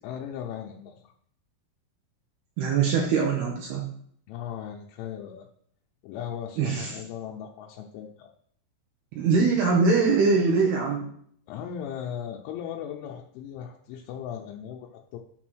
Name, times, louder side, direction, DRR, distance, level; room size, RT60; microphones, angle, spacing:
voice 1, 0.0-1.1 4.3-5.5 6.0-8.3 11.5-15.2, left 9 dB, 90° left, -1 dB, 3.3 m, -37 dB
voice 2, 2.6-3.9 6.6-7.0 9.2-11.1, right 4 dB, 70° right, 0 dB, 2.7 m, -23 dB
12.0 x 4.2 x 6.2 m, 0.64 s
omnidirectional pair, 5.4 m